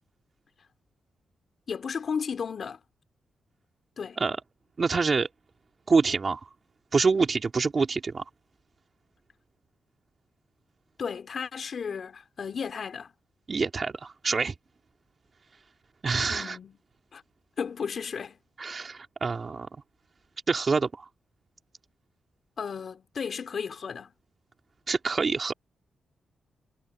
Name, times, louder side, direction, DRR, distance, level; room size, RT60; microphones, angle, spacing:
voice 1, 1.7-2.8 4.0-4.2 11.0-13.1 16.3-16.8 17.1-17.2 17.6-18.4 22.6-24.1, left 6 dB, 55° left, 3.8 m, -34 dB
voice 2, 4.8-5.3 5.9-6.5 6.9-8.2 13.5-14.5 16.0-16.6 18.6-19.7 20.5-21.1 24.9-25.5, right 4 dB, 40° right, 3.1 m, -26 dB
cardioid pair, 85°, 0 cm